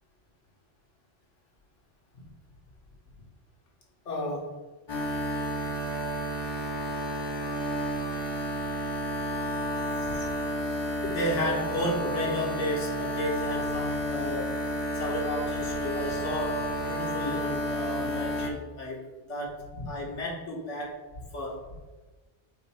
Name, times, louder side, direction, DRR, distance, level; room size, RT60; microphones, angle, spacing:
voice 1, 4.0-4.6 10.0-10.3 11.0-14.6 14.9-19.0 19.3-21.0 21.3-21.8, left 1 dB, 75° left, -2 dB, 1.7 m, -33 dB
sound 1, 4.9-18.5, equal, 25° left, 0.7 m, -31 dB
8.2 x 2.8 x 4.3 m, 1.2 s
omnidirectional pair, 1.2 m